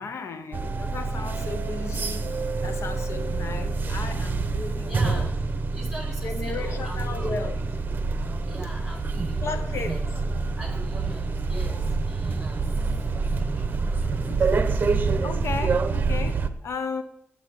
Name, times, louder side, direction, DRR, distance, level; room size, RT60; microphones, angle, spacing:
voice 1, 0.0-5.3 6.2-7.6 9.4-10.0 14.2-17.0, left 4 dB, 70° left, 9 dB, 0.9 m, -35 dB
sound 1, 0.5-16.5, right 4 dB, 40° right, 0.9 m, -27 dB
sound 2, 3.1-15.9, left 1 dB, 15° left, 1.9 m, -50 dB
voice 2, 4.8-5.3 5.7-7.3 8.5-10.0 10.6-14.1 14.6-14.9, equal, 5° right, 1 dB, 4.4 m, -42 dB
8.9 x 8.8 x 9.1 m, 0.75 s
wide cardioid pair, 135°, 5 cm